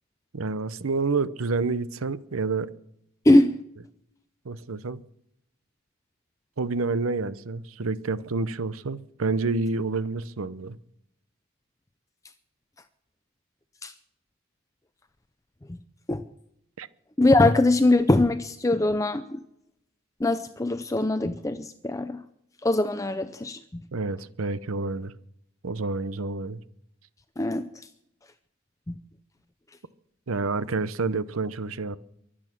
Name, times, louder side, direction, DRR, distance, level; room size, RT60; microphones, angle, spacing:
voice 1, 0.3-2.7 4.4-5.0 6.6-10.8 16.8-16.9 23.9-25.1 25.6-26.6 30.3-32.0, right 3 dB, 85° right, 0.8 m, -28 dB
voice 2, 3.3-3.6 13.8-13.9 16.1-16.2 17.2-19.4 20.2-22.2 22.6-23.8 27.4-27.7 28.9-29.0, left 2 dB, 15° left, 0.5 m, -22 dB
23.5 x 8.8 x 6.0 m
head